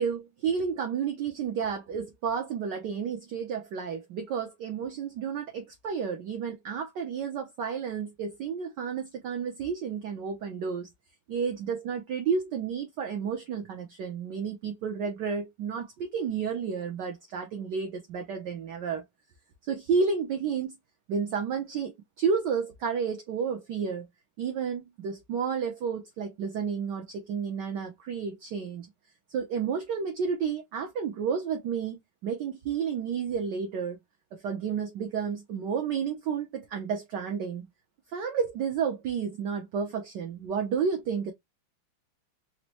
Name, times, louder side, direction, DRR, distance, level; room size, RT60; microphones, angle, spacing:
voice 1, 0.0-10.9 11.3-19.0 19.6-20.8 21.1-24.1 24.4-28.9 29.3-34.0 34.3-37.7 38.1-41.3, right 6 dB, 70° right, 1.1 m, -31 dB
4.1 x 2.1 x 2.8 m
omnidirectional pair, 2.4 m